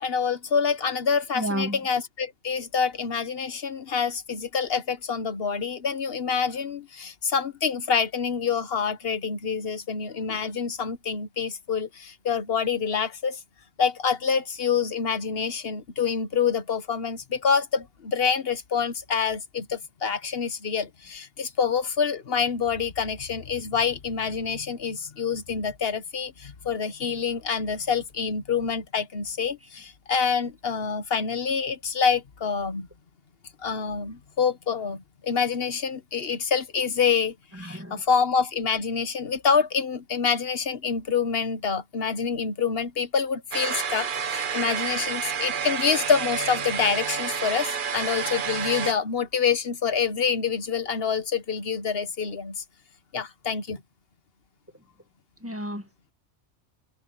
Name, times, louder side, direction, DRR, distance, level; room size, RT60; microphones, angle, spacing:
voice 1, 0.0-13.4 13.8-32.9 33.6-52.6 53.1-53.8, left 6 dB, 55° left, 1.4 m, -27 dB
voice 2, 1.3-1.8 37.5-38.0 55.4-55.9, equal, 10° right, 1.8 m, -31 dB
sound 1, 43.5-48.9, right 6 dB, 50° right, 1.0 m, -29 dB
omnidirectional pair, 1.2 m